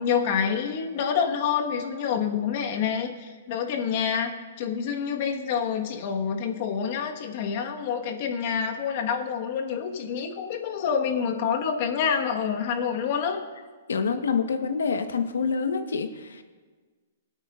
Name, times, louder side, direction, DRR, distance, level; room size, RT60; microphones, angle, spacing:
voice 1, 0.0-4.3 4.6-13.4, left 7 dB, 50° left, 3 dB, 1.3 m, -27 dB
voice 2, 13.9-16.4, left 5 dB, 85° left, 8 dB, 1.0 m, -27 dB
22.0 x 8.8 x 2.4 m, 1.4 s
hypercardioid pair, 140°, 0 cm